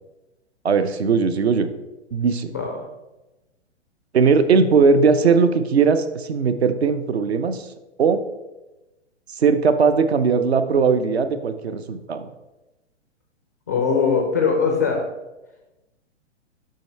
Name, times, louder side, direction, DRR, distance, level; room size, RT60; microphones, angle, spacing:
voice 1, 0.6-1.7 2.1-2.5 4.1-7.7 8.0-8.2 9.4-12.3, right 5 dB, 65° right, 10 dB, 0.6 m, -19 dB
voice 2, 2.5-2.9 13.7-15.0, left 5 dB, 15° left, 2 dB, 0.3 m, -21 dB
6.4 x 5.6 x 3.2 m, 1.0 s
figure-of-eight pair, 115°, 35 cm